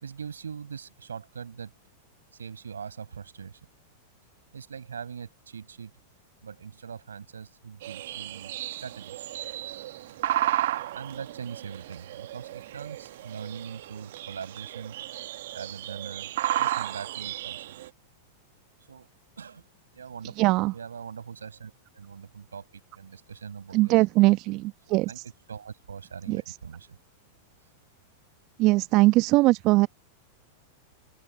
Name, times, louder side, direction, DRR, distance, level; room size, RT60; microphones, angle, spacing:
voice 1, 0.0-1.7 2.3-3.7 4.5-5.9 6.4-8.5 8.8-9.3 10.9-15.0 15.5-16.3 16.6-17.8 18.9-19.7 19.9-23.9 24.9-25.2 25.5-27.0, right 6 dB, 85° right, 5.2 m, -42 dB
sound 1, 7.8-17.9, right 14 dB, 65° right, 1.1 m, -33 dB
voice 2, 20.4-20.7 23.7-25.1 26.3-26.4 28.6-29.9, right 20 dB, 45° right, 1.2 m, -21 dB
open air
hypercardioid pair, 100°, 0 cm